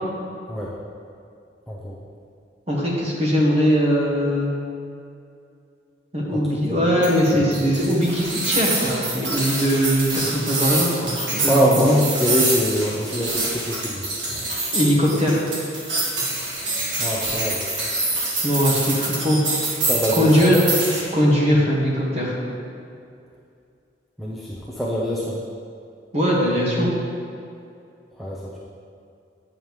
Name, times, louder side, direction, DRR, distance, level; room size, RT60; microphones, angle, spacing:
voice 1, 1.7-2.0 6.3-6.4 6.7-6.9 11.5-14.1 17.0-17.6 19.9-20.6 24.2-25.4 28.2-28.6, equal, ahead, -6 dB, 0.6 m, -24 dB
voice 2, 2.7-4.5 6.1-12.0 14.7-15.4 18.4-19.4 20.2-20.6 21.1-22.4 26.1-26.9, equal, 35° right, -4 dB, 1.6 m, -20 dB
sound 1, 7.0-21.0, right 2 dB, 75° right, 1.6 m, -26 dB
8.9 x 7.1 x 3.2 m, 2.5 s
head